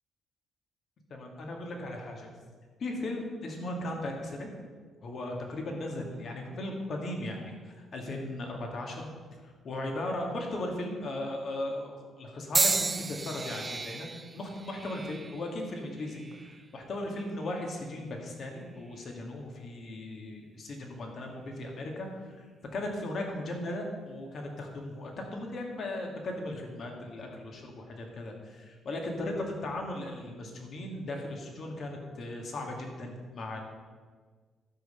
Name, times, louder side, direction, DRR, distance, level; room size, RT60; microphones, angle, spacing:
voice 1, 1.1-2.3 2.8-4.5 5.0-9.1 9.4-14.1 14.3-22.1 22.4-22.5 22.7-33.6, left 1 dB, 55° left, 1 dB, 2.3 m, -37 dB
sound 1, 12.5-16.7 17.4-17.8 18.8-19.0, right 3 dB, 25° right, 0.5 m, -33 dB
12.5 x 5.8 x 7.0 m, 1.5 s
cardioid pair, 90°, 0 cm